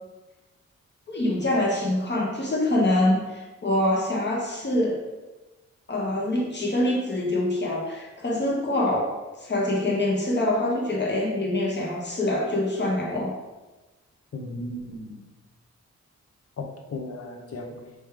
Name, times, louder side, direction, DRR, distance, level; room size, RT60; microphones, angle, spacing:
voice 1, 1.1-5.0 5.9-9.1 9.4-13.3, left 1 dB, 40° left, -3 dB, 1.1 m, -25 dB
voice 2, 14.3-15.2 16.6-17.9, left 2 dB, 55° left, 2 dB, 0.7 m, -36 dB
3.3 x 3.1 x 3.6 m, 1.2 s
cardioid pair, 70°, 29 cm